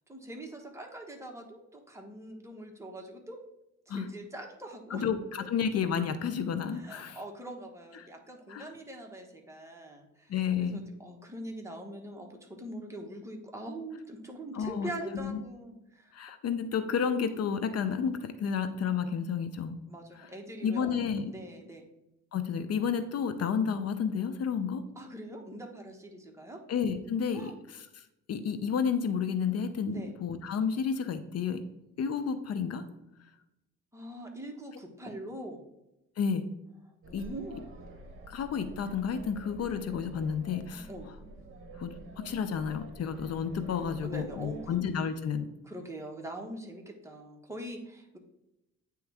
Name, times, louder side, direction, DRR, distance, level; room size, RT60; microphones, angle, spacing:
voice 1, 0.1-3.4 3.9-5.0 5.4-5.5 6.7-16.1 19.9-20.9 21.3-21.9 24.9-26.6 27.3-27.5 29.9-30.1 33.9-35.6 37.1-37.6 40.9-41.1 44.0-45.0 45.6-48.2, right 1 dB, 10° right, 1 dB, 1.2 m, -43 dB
voice 2, 4.9-7.2 8.5-8.7 10.3-10.8 14.5-15.4 16.1-19.8 20.2-20.3 20.6-21.3 22.3-24.8 26.7-27.5 28.3-31.6 32.0-32.8 36.2-36.5 37.1-37.3 38.3-40.9 41.8-45.5, left 6 dB, 55° left, 10 dB, 0.7 m, -31 dB
sound 1, 37.0-44.8, right 2 dB, 45° right, 1.1 m, -49 dB
8.8 x 3.1 x 3.5 m, 0.90 s
cardioid pair, 90°, 30 cm